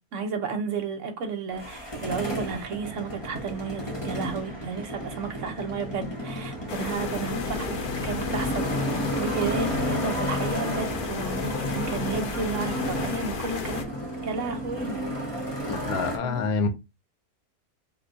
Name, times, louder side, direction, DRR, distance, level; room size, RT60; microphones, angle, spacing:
voice 1, 0.1-8.8 9.2-13.9 14.2-15.0 16.2-16.4, right 4 dB, 60° right, 1.2 m, -32 dB
Motorcycle, 1.5-16.2, equal, 20° left, 0.9 m, -32 dB
sound 1, 6.7-13.8, left 5 dB, 50° left, 0.6 m, -33 dB
voice 2, 15.7-16.7, left 4 dB, 80° left, 1.3 m, -27 dB
4.7 x 2.3 x 3.8 m
omnidirectional pair, 1.5 m